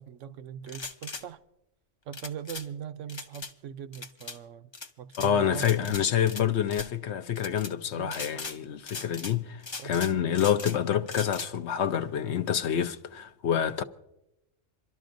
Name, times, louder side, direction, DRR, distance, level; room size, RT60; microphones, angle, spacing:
voice 1, 0.0-1.4 2.1-4.7 5.0-6.1 7.9-8.2 9.8-10.0, right 8 dB, 70° right, 1.0 m, -41 dB
sound 1, 0.7-1.2 2.1-2.7 3.1-3.5 3.9-4.4 4.7-5.3 5.6-6.4 6.7-6.9 7.4-7.7 8.1-8.6 8.9-9.3 9.6-10.8 11.1-11.5, left 3 dB, 30° left, 0.6 m, -39 dB
voice 2, 5.2-13.8, left 9 dB, 65° left, 0.8 m, -27 dB
27.0 x 12.5 x 2.6 m
omnidirectional pair, 1.4 m